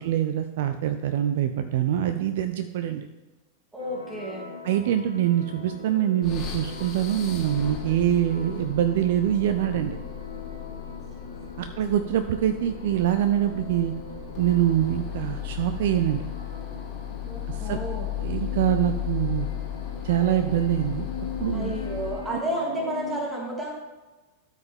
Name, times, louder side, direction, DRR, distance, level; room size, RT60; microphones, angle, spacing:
voice 1, 0.0-3.1 4.6-10.0 11.6-13.9 14.4-16.2 17.5-17.8 18.2-19.5 20.0-21.1 21.4-21.8, right 11 dB, 55° right, 9 dB, 0.4 m, -24 dB
voice 2, 3.7-4.5 10.9-11.3 17.2-18.1 21.5-23.7, right 1 dB, 15° right, -2 dB, 2.3 m, -32 dB
sound 1, 3.8-23.2, left 3 dB, 80° left, 0.9 m, -41 dB
sound 2, 6.2-22.4, left 11 dB, 35° left, 1.7 m, -35 dB
12.5 x 4.9 x 3.6 m, 1.2 s
figure-of-eight pair, 90°, 0 cm